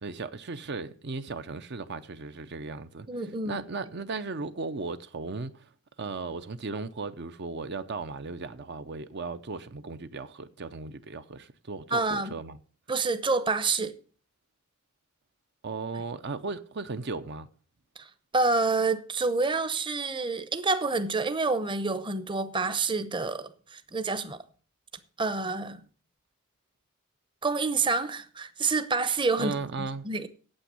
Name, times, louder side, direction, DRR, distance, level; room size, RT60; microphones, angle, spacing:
voice 1, 0.0-3.1 3.4-5.7 6.0-12.6 15.6-17.5 29.4-30.0, right 4 dB, 55° right, 0.7 m, -36 dB
voice 2, 3.1-3.6 11.9-12.3 12.9-13.9 18.0-18.1 18.3-24.4 25.2-25.8 27.4-30.3, right 3 dB, 25° right, 0.8 m, -28 dB
8.9 x 8.0 x 8.1 m
head